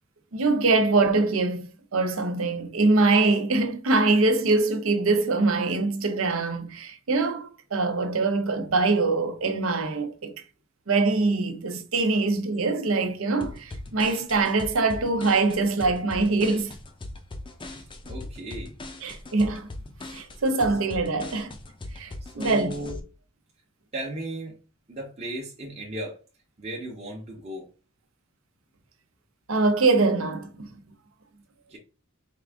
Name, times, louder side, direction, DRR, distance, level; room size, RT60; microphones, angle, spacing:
voice 1, 0.3-10.3 10.9-16.7 19.0-19.7 20.1-21.5 21.9-22.7 29.5-30.7, right 3 dB, 75° right, 0.7 m, -23 dB
sound 1, 13.4-23.0, left 2 dB, 25° left, 0.6 m, -39 dB
voice 2, 17.6-18.7 22.4-23.0 23.9-24.6 24.9-26.2 26.6-27.7 31.7-31.8, right 1 dB, 30° right, 0.9 m, -35 dB
4.6 x 2.5 x 3.4 m
head